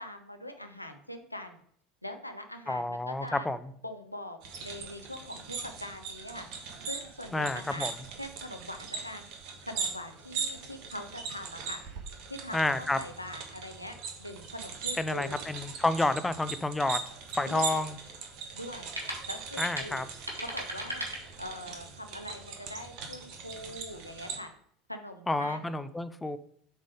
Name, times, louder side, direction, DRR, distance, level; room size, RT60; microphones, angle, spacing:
voice 1, 0.0-1.6 2.0-3.5 3.8-6.5 6.8-9.3 9.6-11.8 12.3-15.4 17.4-17.8 18.5-18.9 19.3-20.0 20.4-21.1 21.4-24.5 24.9-25.7, left 1 dB, 90° left, 5 dB, 0.7 m, -42 dB
voice 2, 2.7-3.6 7.3-7.9 12.5-13.0 15.0-17.0 17.3-18.0 19.6-20.1 25.3-26.4, left 2 dB, 10° left, 12 dB, 0.4 m, -29 dB
sound 1, 4.4-24.4, right 5 dB, 55° right, 1.2 m, -40 dB
sound 2, 16.6-21.8, right 1 dB, 85° right, 1.5 m, -41 dB
7.4 x 3.4 x 5.0 m, 0.63 s
figure-of-eight pair, 70°, 0 cm